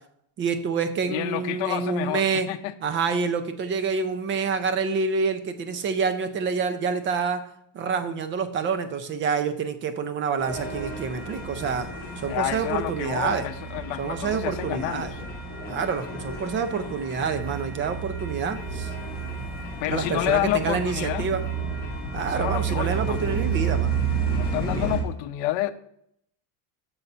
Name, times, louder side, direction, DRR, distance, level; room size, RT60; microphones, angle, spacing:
voice 1, 0.4-2.5 2.8-7.4 7.7-11.9 12.2-13.5 14.0-15.1 15.6-18.9 19.9-21.4 22.1-23.9 24.5-24.9, right 5 dB, 25° right, 0.4 m, -27 dB
voice 2, 1.1-2.7 12.3-15.3 19.8-21.3 22.2-23.2 24.3-25.7, left 15 dB, 65° left, 0.7 m, -29 dB
sound 1, 10.4-25.0, right 5 dB, 20° left, 1.4 m, -31 dB
7.2 x 4.0 x 5.4 m
cardioid pair, 160°, 49 cm